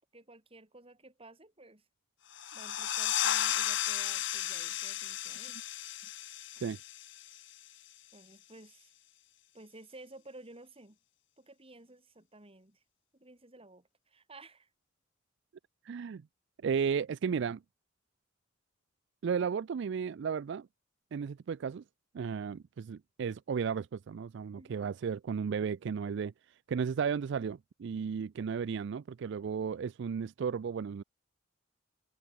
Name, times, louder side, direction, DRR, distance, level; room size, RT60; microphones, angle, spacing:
voice 1, 0.1-1.8 2.5-5.7 6.0-6.1 8.1-8.9 9.5-11.0 11.4-12.8 13.1-14.7 24.5-24.9, right 2 dB, 30° right, 4.4 m, -54 dB
sound 1, 2.3-7.7, left 12 dB, 70° left, 1.1 m, -34 dB
voice 2, 15.8-16.2 16.6-17.6 19.2-20.7 21.1-21.8 22.1-26.3 26.7-31.0, right 6 dB, 65° right, 0.4 m, -34 dB
head